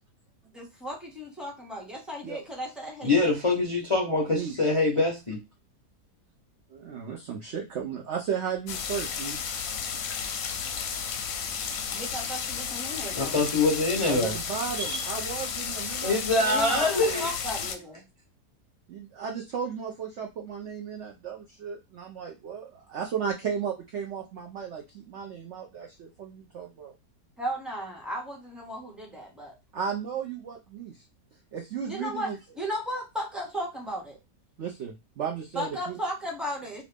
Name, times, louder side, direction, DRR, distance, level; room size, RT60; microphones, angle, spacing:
voice 1, 0.5-3.5 11.9-13.3 16.5-18.0 27.4-29.5 31.9-32.3 32.6-34.2 35.5-36.8, equal, ahead, 0.9 m, -35 dB
voice 2, 3.0-5.4 13.1-14.3 14.8-15.0 16.0-17.3, left 2 dB, 50° left, 0.4 m, -24 dB
voice 3, 6.7-9.5 14.0-16.8 17.1-17.3 18.9-26.9 29.7-31.0 31.5-32.4 34.6-36.0, right 7 dB, 65° right, 0.7 m, -35 dB
sound 1, 8.7-17.8, left 6 dB, 70° left, 0.9 m, -33 dB
3.0 x 2.6 x 3.3 m
omnidirectional pair, 1.8 m